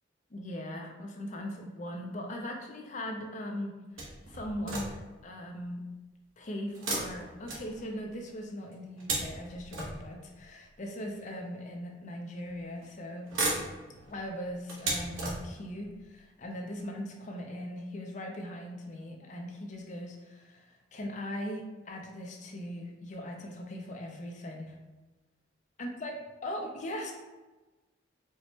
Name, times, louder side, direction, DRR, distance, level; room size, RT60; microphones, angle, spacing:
voice 1, 0.3-3.7 4.3-5.8 6.4-13.3 14.1-24.8 25.8-26.1 26.4-27.1, left 1 dB, 40° left, 2 dB, 0.5 m, -39 dB
sound 1, 4.0-5.2 6.7-8.2 8.7-10.4 11.3-11.4 12.5-12.9 13.2-15.8 16.5-16.6 16.9-17.0, right 2 dB, 90° right, 0.9 m, -36 dB
4.4 x 2.1 x 2.8 m, 1.2 s
head